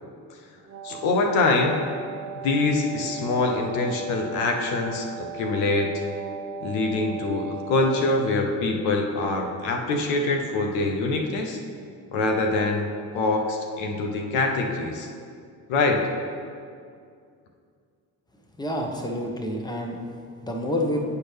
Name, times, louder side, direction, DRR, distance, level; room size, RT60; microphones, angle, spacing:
Wind instrument woodwind instrument, 0.6-8.6, right 6 dB, 35° right, 0.6 m, -38 dB
voice 1, 0.8-1.8 2.4-6.0 6.6-11.6 12.1-15.1 15.7-16.1, left 3 dB, 75° left, 2 dB, 0.8 m, -24 dB
voice 2, 18.6-20.0 20.4-21.0, left 1 dB, 10° left, 1 dB, 1.1 m, -28 dB
9.7 x 4.5 x 3.4 m, 2.2 s
hypercardioid pair, 45°, 48 cm